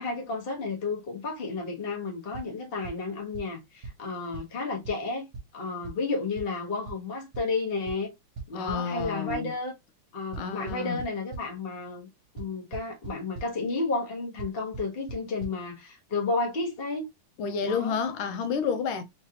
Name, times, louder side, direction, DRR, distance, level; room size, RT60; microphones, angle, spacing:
voice 1, 0.0-8.1 8.5-9.7 10.1-12.1 12.3-17.1 17.6-18.0, left 3 dB, 35° left, 1.2 m, -32 dB
sound 1, 2.3-2.4 2.8-2.9 3.3-3.4 3.8-3.9 4.3-4.4 4.8-4.9 5.3-5.4 5.8-5.9 6.4-6.5 6.9-7.0 7.3-7.4 7.9-8.0 8.4-9.4 10.3-11.4 12.4-12.5 12.7-13.1 13.3-13.4 14.4-14.5 14.7-14.8 15.1-15.2 15.4-15.5, right 4 dB, 55° right, 1.0 m, -37 dB
voice 2, 8.5-9.5 10.4-11.0 17.4-19.0, left 5 dB, 80° left, 1.5 m, -30 dB
3.8 x 3.1 x 2.8 m
omnidirectional pair, 2.3 m